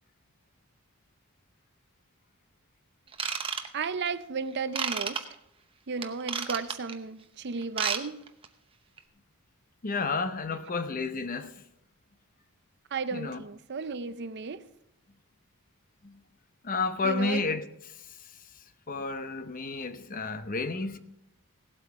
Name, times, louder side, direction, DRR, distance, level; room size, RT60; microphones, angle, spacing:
Ratchet pawl / Tools, 3.1-4.1 4.7-5.2 6.0-6.9 7.6-8.0 8.3-8.5 9.0-9.1, right 6 dB, 25° right, 0.8 m, -31 dB
voice 1, 3.7-5.2 5.9-8.2 12.9-14.6 17.0-17.4, right 5 dB, 50° right, 0.5 m, -34 dB
voice 2, 9.8-11.5 13.1-13.4 16.0-16.2 16.6-17.6 18.9-21.0, left 4 dB, 40° left, 0.7 m, -31 dB
17.0 x 8.2 x 4.8 m
head